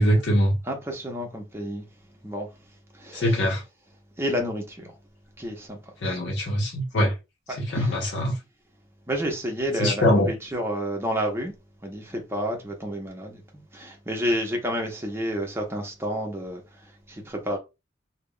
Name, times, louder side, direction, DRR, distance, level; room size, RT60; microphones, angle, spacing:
voice 1, 0.0-0.6 3.1-3.6 6.0-7.1 7.6-8.3 9.8-10.3, equal, 75° left, 0.7 m, -22 dB
voice 2, 0.6-1.9 2.2-2.5 2.9-3.5 4.2-4.9 5.4-6.2 7.5-8.1 9.1-11.5 11.8-17.6, equal, 15° right, 0.6 m, -30 dB
2.3 x 2.0 x 3.5 m
head